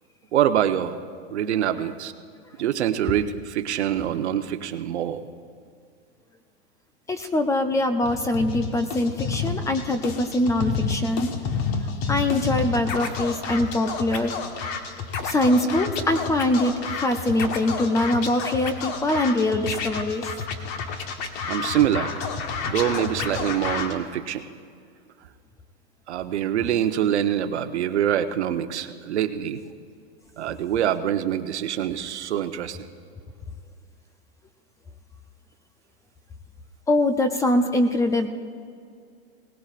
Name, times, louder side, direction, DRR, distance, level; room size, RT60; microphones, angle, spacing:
voice 1, 0.3-1.0 1.3-2.1 2.6-5.2 21.4-22.2 22.6-24.5 26.1-29.6 30.4-32.9, right 10 dB, 85° right, 8 dB, 0.9 m, -25 dB
voice 2, 7.1-11.3 12.1-14.3 15.2-16.7 17.0-20.3 36.9-38.3, left 1 dB, 10° left, 8 dB, 0.4 m, -23 dB
Scratching (performance technique), 8.0-23.9, left 5 dB, 45° left, 1.3 m, -30 dB
21.0 x 18.5 x 2.5 m, 2.2 s
hypercardioid pair, 135°, 33 cm